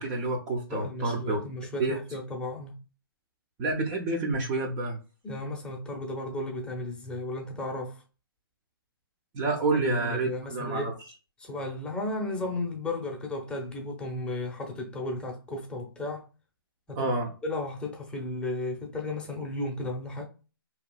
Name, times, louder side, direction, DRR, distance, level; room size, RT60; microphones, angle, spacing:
voice 1, 0.0-1.4 1.8-2.0 3.6-5.0 9.3-10.9 17.0-17.3, right 3 dB, 25° right, 0.6 m, -28 dB
voice 2, 0.7-2.8 5.2-8.0 9.7-10.9 11.4-16.2 16.9-17.1 17.4-20.2, left 2 dB, 10° left, 0.8 m, -34 dB
4.5 x 3.0 x 2.2 m
figure-of-eight pair, 130°, 12 cm